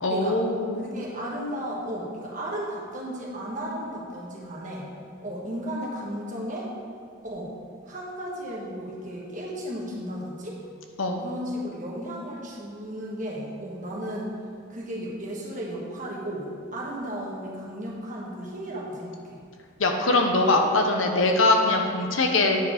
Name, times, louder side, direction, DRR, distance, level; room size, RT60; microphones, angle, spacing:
voice 1, 0.0-0.8 11.0-11.2 19.8-22.6, left 2 dB, 70° left, 3 dB, 0.9 m, -22 dB
voice 2, 0.8-4.9 5.2-6.7 7.2-7.5 7.8-10.6 11.2-14.3 14.7-19.4, equal, 35° right, -3 dB, 1.4 m, -34 dB
9.1 x 4.9 x 5.0 m, 2.2 s
head